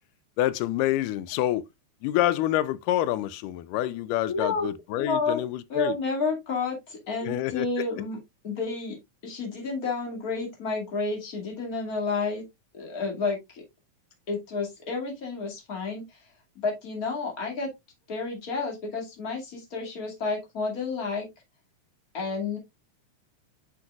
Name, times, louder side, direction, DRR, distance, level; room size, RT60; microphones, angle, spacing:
voice 1, 0.4-1.6 2.0-6.0 7.2-7.7, left 13 dB, 90° left, 2.1 m, -27 dB
voice 2, 4.3-5.4 5.7-8.2 8.4-9.0 9.2-12.4 12.7-13.6 14.3-16.2 16.6-17.7 18.1-21.3 22.1-22.6, left 4 dB, 30° left, 2.3 m, -30 dB
7.9 x 5.9 x 2.4 m
omnidirectional pair, 3.7 m